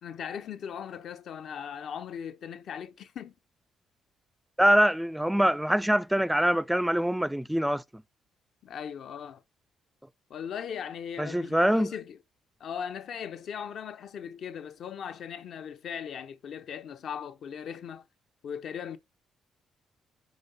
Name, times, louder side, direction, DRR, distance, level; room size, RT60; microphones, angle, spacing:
voice 1, 0.0-3.3 8.6-9.4 10.3-12.2 12.6-18.0 18.4-19.0, left 8 dB, 65° left, 0.7 m, -38 dB
voice 2, 4.6-8.0 11.2-11.9, equal, 5° right, 0.3 m, -24 dB
5.2 x 4.5 x 5.4 m
cardioid pair, 90°, 0 cm